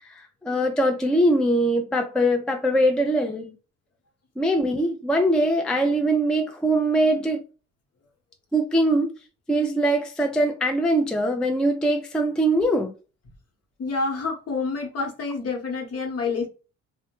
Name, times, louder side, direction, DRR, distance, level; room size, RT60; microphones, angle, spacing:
voice 1, 0.1-3.5 4.4-7.4 8.5-9.1 9.5-12.9, right 1 dB, 5° left, 0.3 m, -22 dB
voice 2, 13.8-16.5, left 4 dB, 55° left, 1.0 m, -28 dB
2.1 x 2.1 x 3.0 m
cardioid pair, 90°, 30 cm